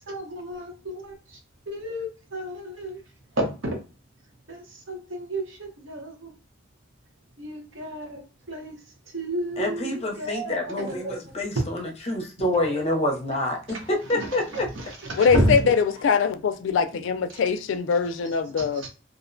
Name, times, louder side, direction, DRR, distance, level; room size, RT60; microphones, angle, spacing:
voice 1, 0.1-1.1 1.7-3.0 3.4-3.8 4.5-4.6 4.9-5.4 5.9-6.1 7.4-8.2 8.5-8.7 9.1-11.2 14.1-14.8 15.2-15.6 18.8-18.9, right 1 dB, 85° right, 0.8 m, -30 dB
voice 2, 9.6-14.7, left 1 dB, 35° left, 0.6 m, -27 dB
voice 3, 15.2-18.8, left 6 dB, 85° left, 0.3 m, -22 dB
2.5 x 2.0 x 2.5 m
head